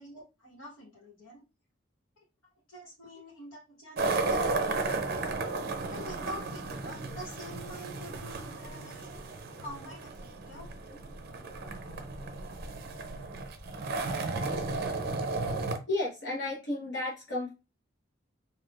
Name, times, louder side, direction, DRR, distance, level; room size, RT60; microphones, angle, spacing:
voice 1, 0.0-1.4 2.7-4.8 5.9-9.2 9.6-10.7, equal, 90° left, -4 dB, 1.2 m, -46 dB
sound 1, 4.0-15.8, right 3 dB, 50° right, 0.5 m, -34 dB
voice 2, 15.9-17.5, left 2 dB, 55° left, -6 dB, 0.9 m, -32 dB
3.5 x 2.3 x 2.3 m, 0.28 s
head